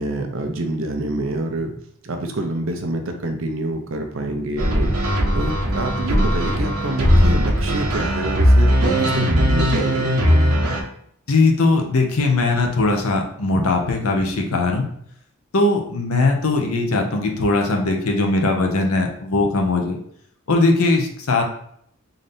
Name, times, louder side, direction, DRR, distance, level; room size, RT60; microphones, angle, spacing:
voice 1, 0.0-1.7 2.0-4.9 5.3-10.1, right 1 dB, 60° right, 5 dB, 0.6 m, -26 dB
sound 1, 4.6-10.8, equal, 90° right, 0.9 m, -18 dB
voice 2, 11.3-14.9 15.5-20.0 20.5-21.4, left 3 dB, 75° left, 2 dB, 0.7 m, -19 dB
3.9 x 2.7 x 3.4 m, 0.68 s
head